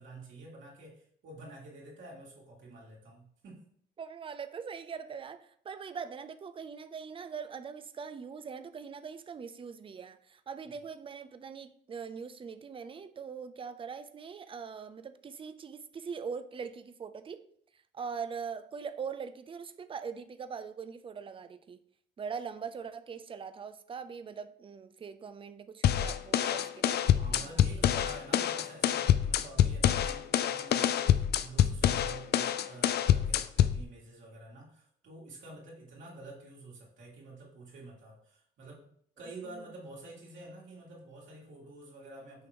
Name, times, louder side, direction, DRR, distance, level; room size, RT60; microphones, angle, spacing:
voice 1, 0.0-3.7 27.2-38.9 39.2-42.5, right 2 dB, 70° right, 2.6 m, -49 dB
voice 2, 4.0-17.4 17.9-21.8 22.2-28.0 39.5-39.7, right 6 dB, 25° right, 0.4 m, -42 dB
sound 1, 25.8-33.8, left 10 dB, 55° left, 0.4 m, -26 dB
6.3 x 3.0 x 5.1 m
cardioid pair, 90°, 20 cm